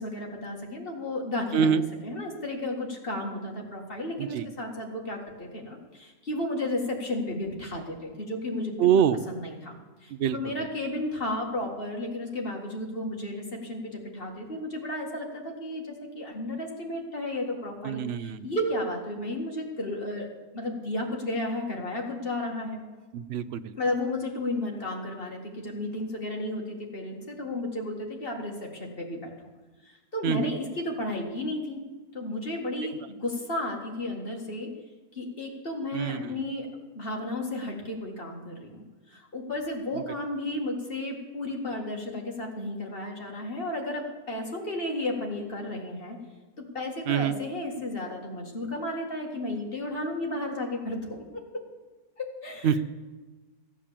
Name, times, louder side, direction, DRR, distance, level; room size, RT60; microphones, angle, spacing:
voice 1, 0.0-8.9 9.3-20.3 20.5-22.8 23.8-29.3 29.8-31.8 32.1-34.7 35.1-46.2 46.6-51.7 52.2-52.8, left 1 dB, 35° left, 0 dB, 2.2 m, -33 dB
voice 2, 8.8-9.2 10.1-10.4 17.9-18.5 23.1-23.7 30.2-30.5 32.8-32.9 35.9-36.2 47.1-47.3 52.6-52.8, right 8 dB, 60° right, 11 dB, 0.7 m, -25 dB
15.0 x 8.4 x 7.4 m, 1.3 s
omnidirectional pair, 1.6 m